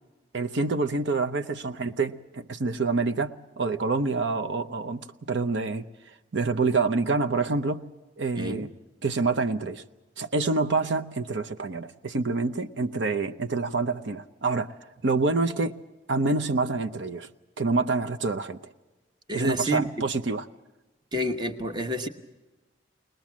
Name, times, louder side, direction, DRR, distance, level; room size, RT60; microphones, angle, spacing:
voice 1, 0.3-5.9 6.3-7.9 8.2-8.7 9.0-9.8 10.2-14.7 15.0-15.8 16.1-17.3 17.6-18.6 19.3-20.4, right 3 dB, 75° right, 8 dB, 0.8 m, -27 dB
voice 2, 19.3-19.9 21.1-22.1, right 1 dB, 25° right, 7 dB, 1.0 m, -28 dB
21.0 x 20.5 x 7.4 m, 1.1 s
head